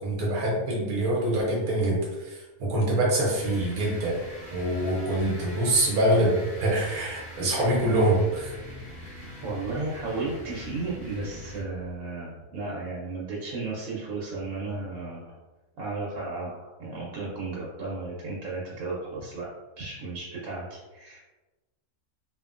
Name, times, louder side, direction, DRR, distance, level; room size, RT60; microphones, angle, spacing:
voice 1, 0.0-4.2 4.5-8.5, right 1 dB, 90° right, -3 dB, 1.2 m, -25 dB
sound 1, 3.4-11.9, left 1 dB, 35° left, 1.1 m, -43 dB
voice 2, 9.4-15.3 15.8-19.5 19.8-21.2, right 3 dB, 70° right, -5 dB, 1.0 m, -34 dB
2.8 x 2.4 x 2.4 m, 1.1 s
omnidirectional pair, 1.5 m